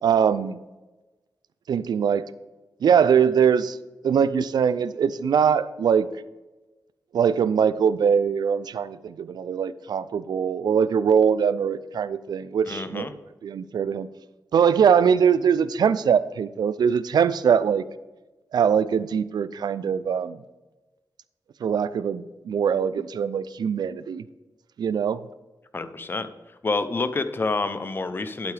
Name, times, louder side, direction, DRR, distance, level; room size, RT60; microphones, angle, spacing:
voice 1, 0.0-0.6 1.7-2.3 2.8-3.8 4.0-6.1 7.1-13.1 13.4-14.1 14.5-17.8 18.5-20.4 21.6-24.2 24.8-25.2, right 7 dB, 80° right, 16 dB, 0.4 m, -22 dB
voice 2, 12.6-13.1 25.7-26.3 26.6-28.5, left 3 dB, 30° left, 11 dB, 0.6 m, -28 dB
11.5 x 8.2 x 3.4 m, 1.1 s
wide cardioid pair, 140°, 7 cm